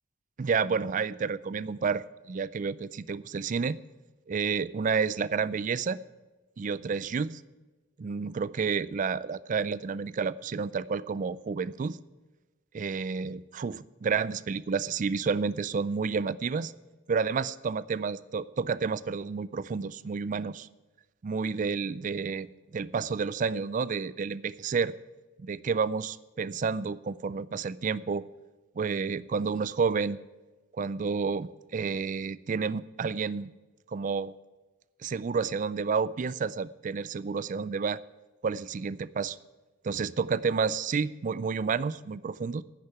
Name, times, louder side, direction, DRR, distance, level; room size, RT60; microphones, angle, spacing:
voice 1, 0.4-3.8 4.3-6.0 6.6-7.4 8.0-12.0 12.7-16.7 17.1-20.7 21.2-22.5 22.7-24.9 25.4-28.2 28.8-30.2 30.8-33.5 33.9-34.3 35.0-38.0 38.4-39.4 39.8-42.6, right 5 dB, 40° right, 18 dB, 0.4 m, -30 dB
10.0 x 6.7 x 9.2 m, 1.2 s
head